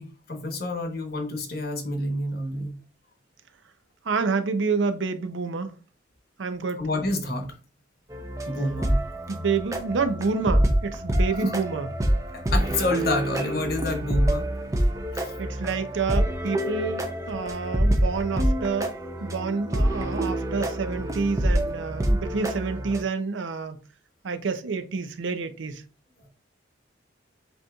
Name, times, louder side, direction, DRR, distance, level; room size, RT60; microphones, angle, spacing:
voice 1, 0.0-2.7 6.8-7.5 8.5-9.0 11.4-11.5 12.5-14.5 15.1-15.3, left 2 dB, 50° left, 1.0 m, -28 dB
voice 2, 4.1-5.7 6.4-6.8 9.3-11.9 15.4-18.9 19.2-23.8 24.2-25.8, right 4 dB, 75° right, 0.5 m, -28 dB
sound 1, 8.1-23.0, right 1 dB, 15° right, 0.5 m, -26 dB
7.7 x 2.9 x 2.3 m
head